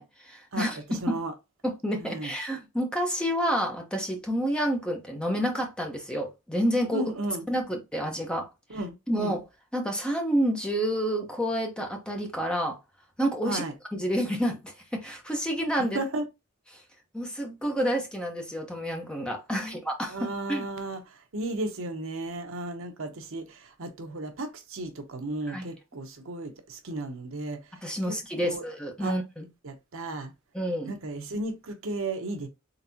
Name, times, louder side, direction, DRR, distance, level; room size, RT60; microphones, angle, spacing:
voice 1, 0.0-1.2 1.6-7.0 7.5-8.5 9.1-9.4 9.7-12.8 13.2-13.7 13.9-16.0 16.7-16.8 17.1-20.7 25.5-25.7 27.8-29.5 30.5-31.0, equal, 5° left, 0.8 m, -29 dB
voice 2, 0.5-1.3 2.0-2.3 6.9-7.4 8.7-9.4 13.5-13.7 15.9-16.2 19.5-19.7 20.1-27.6 28.1-28.6 29.0-29.1 29.6-30.3 30.9-32.5, right 2 dB, 65° right, 0.7 m, -34 dB
3.9 x 3.5 x 2.7 m
head